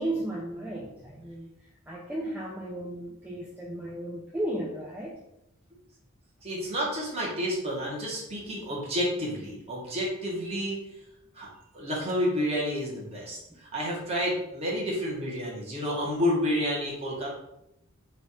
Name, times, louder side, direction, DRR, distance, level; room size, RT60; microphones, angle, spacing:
voice 1, 0.0-1.5 1.9-5.2 13.5-13.6, right 1 dB, 10° right, -3 dB, 0.3 m, -34 dB
voice 2, 6.4-10.8 11.3-11.5 11.7-13.4 13.7-17.3, equal, 30° right, -4 dB, 1.0 m, -30 dB
3.1 x 2.4 x 4.2 m, 0.84 s
head